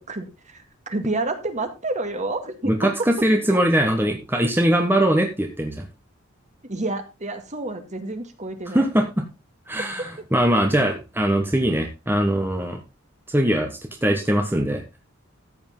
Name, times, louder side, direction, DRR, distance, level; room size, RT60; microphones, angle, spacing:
voice 1, 0.1-3.1 3.5-3.6 6.7-8.9 9.8-10.1, right 2 dB, 35° right, 7 dB, 2.1 m, -29 dB
voice 2, 2.6-5.9 8.7-9.3 9.7-12.8 13.3-14.8, right 1 dB, 10° right, 4 dB, 1.3 m, -21 dB
14.0 x 8.2 x 3.8 m, 0.26 s
head